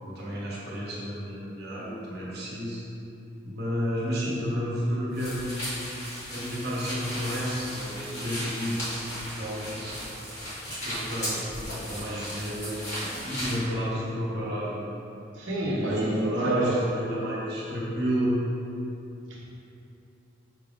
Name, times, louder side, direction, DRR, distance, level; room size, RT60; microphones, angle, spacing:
voice 1, 0.0-2.8 3.4-5.7 6.3-8.9 9.3-10.1 10.6-14.7 15.6-18.4, equal, 55° right, -7 dB, 1.0 m, -31 dB
sound 1, 5.2-13.6, equal, 35° left, 1.5 m, -36 dB
voice 2, 15.3-16.8 19.3-19.4, right 1 dB, 80° right, -6 dB, 0.9 m, -28 dB
5.4 x 3.5 x 2.4 m, 2.8 s
head